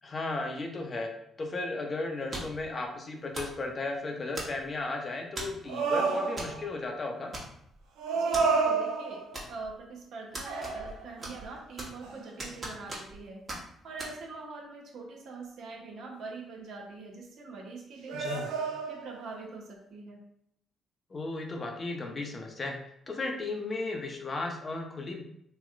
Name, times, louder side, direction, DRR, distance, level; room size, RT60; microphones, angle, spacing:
voice 1, 0.0-1.1 1.4-7.3 18.1-18.4 21.1-22.8 23.1-25.2, left 2 dB, 40° left, 2 dB, 0.7 m, -35 dB
sound 1, 2.3-2.7 3.3-3.6 4.3-4.8 5.4-5.6 6.4-6.6 6.8-6.9 7.3-7.8 8.3-8.5 9.3-9.8 10.3-10.9 11.2-12.0 12.4-13.2 13.5-13.6 14.0-14.1, right 1 dB, 45° right, 1.2 m, -39 dB
sound 2, 5.7-6.8 8.0-9.5 10.4-11.4 12.0-12.2 18.1-19.2, right 4 dB, 85° right, 0.5 m, -30 dB
voice 2, 8.1-13.4 13.8-18.5 18.9-20.2, right 3 dB, 70° right, -1 dB, 0.8 m, -44 dB
3.1 x 2.8 x 2.5 m, 0.73 s
supercardioid pair, 55°, 0 cm